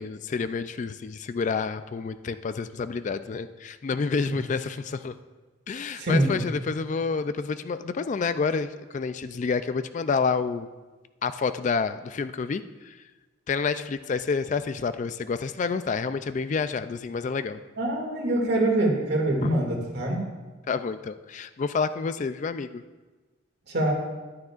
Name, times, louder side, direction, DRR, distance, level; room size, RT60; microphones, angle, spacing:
voice 1, 0.0-5.2 5.7-10.7 11.2-13.0 13.5-17.6 19.4-19.5 20.7-22.8, left 5 dB, 40° left, 12 dB, 0.3 m, -29 dB
voice 2, 6.0-6.4 17.8-20.2 23.7-23.9, right 1 dB, 55° right, 0 dB, 2.2 m, -24 dB
13.0 x 11.5 x 2.5 m, 1.3 s
head